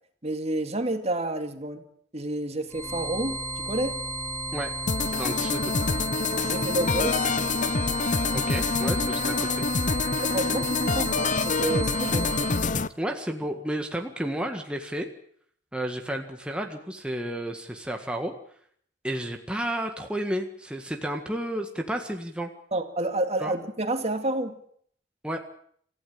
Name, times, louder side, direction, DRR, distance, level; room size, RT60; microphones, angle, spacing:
voice 1, 0.2-1.8 2.1-4.0 6.4-7.3 10.2-12.3 22.7-24.6, right 1 dB, 35° right, 7 dB, 2.3 m, -29 dB
sound 1, 2.7-12.7, right 2 dB, 15° left, 7.7 m, -33 dB
sound 2, 4.9-12.9, left 4 dB, 45° left, 0.9 m, -26 dB
voice 2, 5.0-5.7 8.3-9.7 13.0-15.1 15.7-18.3 19.0-22.5 23.4-23.6 25.2-25.4, right 1 dB, 5° right, 3 dB, 1.8 m, -32 dB
27.0 x 15.5 x 8.6 m, 0.63 s
head